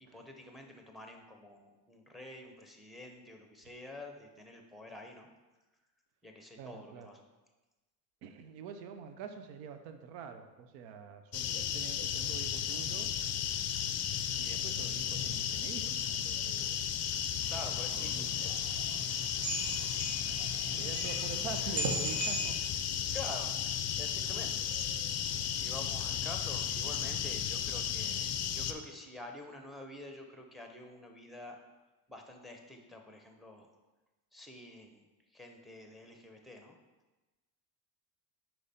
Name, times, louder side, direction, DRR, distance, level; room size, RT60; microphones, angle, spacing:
voice 1, 0.1-5.3 6.2-7.3 17.5-18.6 23.1-23.5 24.0-24.7 25.5-31.6 32.1-33.7 34.3-35.0 35.3-36.8, left 1 dB, ahead, 3 dB, 0.7 m, -48 dB
voice 2, 6.6-7.1 8.2-13.1 14.4-16.8 17.8-18.4 20.8-22.6, right 6 dB, 85° right, 8 dB, 0.7 m, -46 dB
sound 1, 11.3-28.7, left 9 dB, 35° left, 0.4 m, -34 dB
sound 2, 17.4-22.5, right 2 dB, 60° right, 1.6 m, -39 dB
5.0 x 4.5 x 4.2 m, 1.1 s
supercardioid pair, 95°, 48 cm